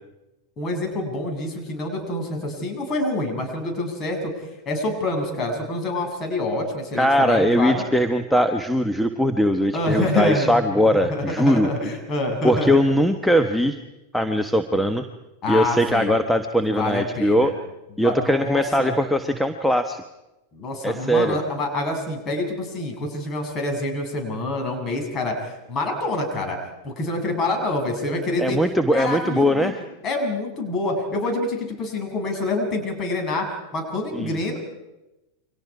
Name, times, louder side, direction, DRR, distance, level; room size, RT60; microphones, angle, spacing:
voice 1, 0.6-7.8 9.7-10.5 11.1-12.8 15.4-16.1 16.7-17.5 18.0-18.9 20.5-26.6 26.8-28.6 28.9-29.7 30.0-33.5 33.7-34.6, left 2 dB, 30° left, 3 dB, 7.4 m, -26 dB
voice 2, 7.0-11.7 12.4-13.8 14.1-15.1 15.5-17.5 18.0-20.0 20.8-21.4 28.4-29.8 34.1-34.4, equal, ahead, 7 dB, 1.2 m, -20 dB
29.5 x 25.0 x 4.9 m, 0.98 s
figure-of-eight pair, 90°, 0 cm